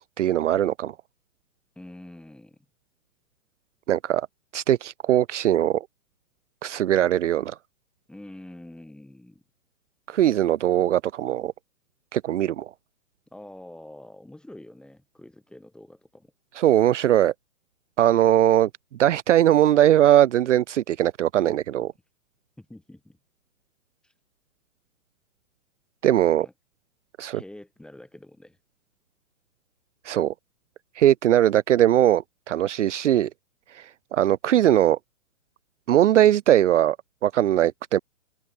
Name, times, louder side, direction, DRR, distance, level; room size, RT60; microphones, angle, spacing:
voice 1, 0.2-0.9 3.9-4.3 4.5-5.9 6.6-7.6 10.1-11.5 12.1-12.7 16.6-17.3 18.0-18.7 19.0-21.9 26.0-26.5 27.2-27.4 30.0-30.3 31.0-33.3 33.7-35.0 35.9-37.0 37.2-38.0, right 12 dB, 55° right, 1.0 m, -20 dB
voice 2, 1.7-2.6 8.1-9.4 13.3-16.3 16.6-16.7 22.6-23.2 24.0-24.1 26.4-26.5 27.3-28.6, left 1 dB, ahead, 3.2 m, -46 dB
hypercardioid pair, 155°, 44 cm